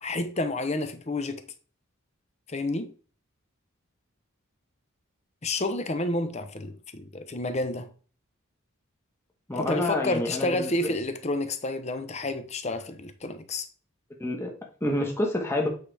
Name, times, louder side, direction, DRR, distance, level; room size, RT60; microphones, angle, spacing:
voice 1, 0.0-1.4 2.5-2.9 5.4-7.9 9.5-13.6, left 2 dB, 30° left, 0.8 m, -30 dB
voice 2, 9.5-11.0 14.2-15.7, left 1 dB, 10° left, 1.3 m, -28 dB
8.6 x 4.8 x 3.4 m
head